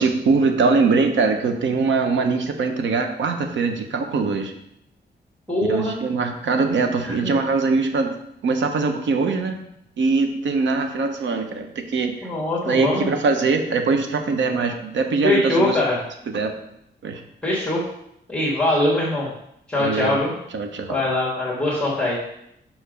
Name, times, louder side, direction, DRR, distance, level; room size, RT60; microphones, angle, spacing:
voice 1, 0.0-4.5 5.6-8.1 8.4-9.6 10.0-12.3 12.7-15.8 16.3-16.5 17.0-17.2 19.8-20.2 20.5-21.0, right 4 dB, 90° right, 5 dB, 0.8 m, -22 dB
voice 2, 5.5-6.0 7.0-7.4 12.2-13.1 15.2-16.0 17.4-17.8 18.3-19.3 19.7-20.3 20.9-22.2, left 1 dB, 5° left, -6 dB, 1.4 m, -22 dB
5.8 x 4.8 x 5.1 m, 0.77 s
wide cardioid pair, 180°, 19 cm